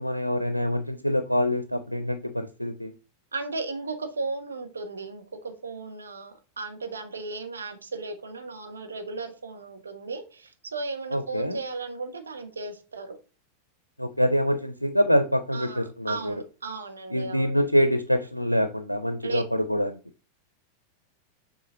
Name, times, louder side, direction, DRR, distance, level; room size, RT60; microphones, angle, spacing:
voice 1, 0.0-2.9 11.1-11.6 14.0-16.3 17.1-20.0, equal, 90° left, 0.5 m, -25 dB
voice 2, 3.3-13.2 15.5-17.6 19.2-19.4, right 3 dB, 75° right, 1.1 m, -35 dB
7.0 x 3.7 x 3.7 m
figure-of-eight pair, 90°, 0 cm